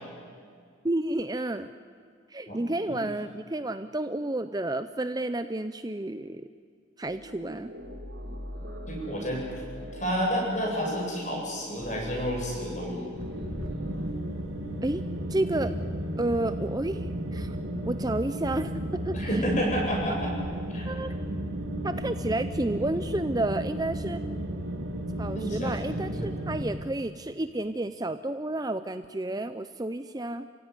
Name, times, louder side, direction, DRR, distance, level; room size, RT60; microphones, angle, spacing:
voice 1, 0.8-1.7 2.3-6.5 7.0-7.7 14.8-15.0 15.3-15.7 16.2-17.6 17.8-19.4 20.9-21.1 21.8-24.2 25.2-30.5, right 1 dB, 20° right, 10 dB, 0.6 m, -31 dB
voice 2, 2.5-3.0 8.9-9.5 9.8-13.0 19.1-20.3 20.7-20.9 25.3-26.3, equal, 35° left, -1 dB, 7.8 m, -30 dB
sound 1, 7.0-14.1, left 1 dB, 65° right, 4.9 m, -41 dB
sound 2, 13.2-26.6, right 1 dB, 90° right, 3.4 m, -33 dB
29.0 x 16.5 x 9.8 m, 2.1 s
head